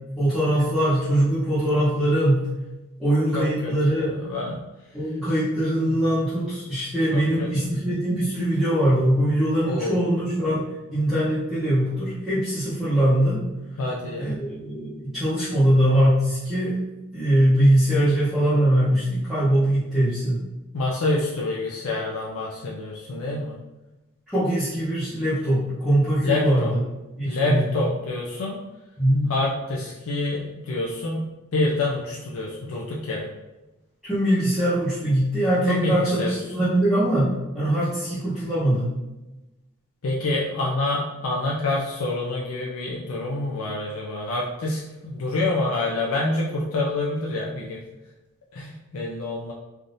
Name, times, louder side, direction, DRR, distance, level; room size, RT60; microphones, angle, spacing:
voice 1, 0.2-2.5 3.0-4.1 4.9-10.6 10.9-13.4 14.2-16.8 17.1-20.4 24.3-26.7 27.2-27.6 29.0-29.3 34.0-38.9, right 1 dB, ahead, -14 dB, 0.8 m, -22 dB
voice 2, 3.3-4.6 5.8-6.0 7.1-7.7 9.6-10.0 13.8-14.4 20.7-23.5 26.2-26.7 27.2-28.6 29.3-31.2 31.5-33.3 35.7-36.4 40.0-47.8 48.5-49.5, left 2 dB, 80° left, -3 dB, 0.4 m, -27 dB
3.4 x 2.5 x 2.6 m, 1.0 s
head